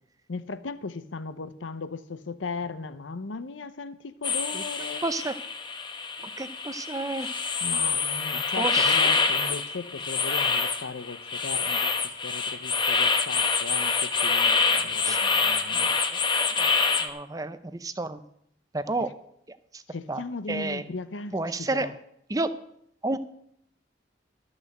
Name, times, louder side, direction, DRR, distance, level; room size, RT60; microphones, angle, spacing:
voice 1, 0.3-5.1 7.6-16.0 19.0-19.1 19.9-21.9, left 4 dB, 85° left, 13 dB, 0.7 m, -37 dB
sound 1, 4.2-17.1, left 4 dB, 25° left, 0.9 m, -26 dB
voice 2, 5.0-5.3 6.4-7.3 8.6-8.9 15.0-15.2 16.6-16.7 17.0-18.2 18.7-19.1 20.1-20.2 20.5-20.8 21.3-21.9 22.3-22.5 23.0-23.2, right 2 dB, 20° right, 12 dB, 0.6 m, -30 dB
13.0 x 6.3 x 7.8 m, 0.72 s
head